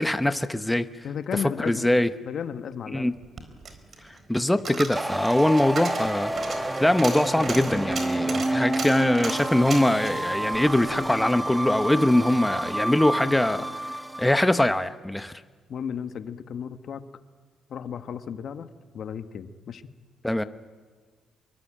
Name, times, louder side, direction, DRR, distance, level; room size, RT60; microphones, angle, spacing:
voice 1, 0.0-0.9 1.6-2.1 2.9-3.1 4.3-6.3 6.8-13.6 14.2-15.3 20.2-20.4, left 1 dB, 10° left, 1.0 m, -22 dB
voice 2, 1.0-1.9 2.2-3.1 8.3-8.5 13.5-13.6 15.7-17.0 17.7-19.8, left 7 dB, 60° left, 1.3 m, -34 dB
Coin (dropping), 3.1-11.6 11.9-12.0, right 4 dB, 45° right, 4.2 m, -36 dB
sound 1, 4.9-14.6, right 1 dB, 15° right, 1.4 m, -29 dB
24.0 x 23.0 x 8.8 m
cardioid pair, 90°, 0 cm